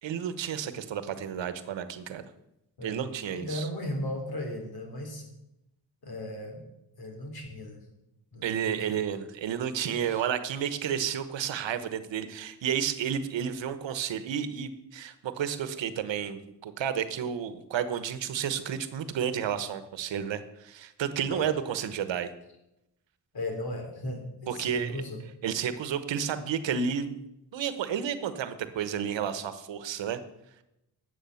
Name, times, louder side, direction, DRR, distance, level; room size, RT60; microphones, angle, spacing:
voice 1, 0.0-2.2 2.8-3.7 8.4-22.3 24.5-25.0 25.4-27.2 27.5-30.2, right 8 dB, 90° right, 12 dB, 1.2 m, -31 dB
voice 2, 3.3-5.2 6.0-6.6 7.0-7.8 8.3-9.0 10.0-10.2 21.3-21.5 23.3-25.2, left 1 dB, 55° left, 3 dB, 3.5 m, -36 dB
12.0 x 8.3 x 7.0 m, 0.87 s
wide cardioid pair, 120°, 43 cm